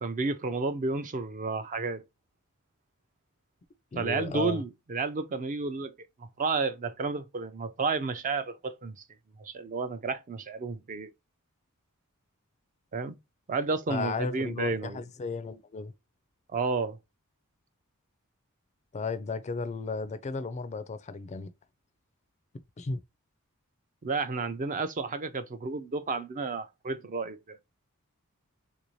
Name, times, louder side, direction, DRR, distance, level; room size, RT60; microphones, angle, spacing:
voice 1, 0.0-2.0 4.0-5.9 6.4-9.0 9.4-11.1 12.9-13.2 13.5-15.0 16.5-17.0 24.0-27.6, right 4 dB, 35° right, 0.4 m, -31 dB
voice 2, 3.9-4.6 13.9-15.9 18.9-21.5 22.8-23.0, left 4 dB, 30° left, 0.4 m, -34 dB
3.4 x 2.6 x 3.0 m
head